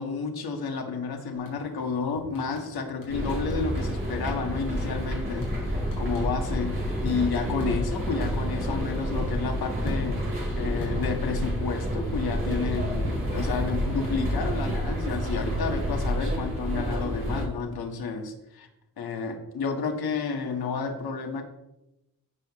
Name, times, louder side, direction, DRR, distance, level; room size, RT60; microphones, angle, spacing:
voice 1, 0.0-18.7 19.0-21.4, left 5 dB, 85° left, 3 dB, 1.7 m, -31 dB
sound 1, 1.3-1.8 2.2-3.2 3.5-4.0 4.2-8.1 8.4-10.5 10.8-11.7 11.9-14.8, left 4 dB, 60° left, 4.2 m, -40 dB
sound 2, 3.1-17.4, equal, 35° right, 4.2 m, -29 dB
16.0 x 7.4 x 3.1 m, 0.92 s
wide cardioid pair, 125°, 36 cm